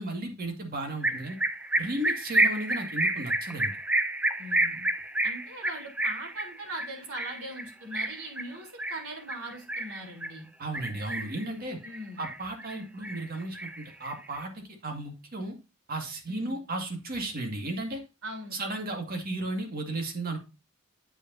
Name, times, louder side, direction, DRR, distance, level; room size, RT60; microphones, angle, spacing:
voice 1, 0.0-1.4 1.8-3.8 10.6-11.8 12.2-15.6 15.9-18.0 18.5-20.4, right 2 dB, 45° right, 3 dB, 2.0 m, -34 dB
bee-eater.single, 1.0-10.4 10.7-11.5 11.8-12.8 13.0-14.4, right 1 dB, 5° right, 0.5 m, -29 dB
voice 2, 4.4-4.9 5.2-10.5 11.8-12.3 16.3-16.6 18.2-18.6, right 1 dB, 75° right, 1 dB, 3.7 m, -41 dB
8.5 x 8.3 x 2.7 m, 0.28 s
head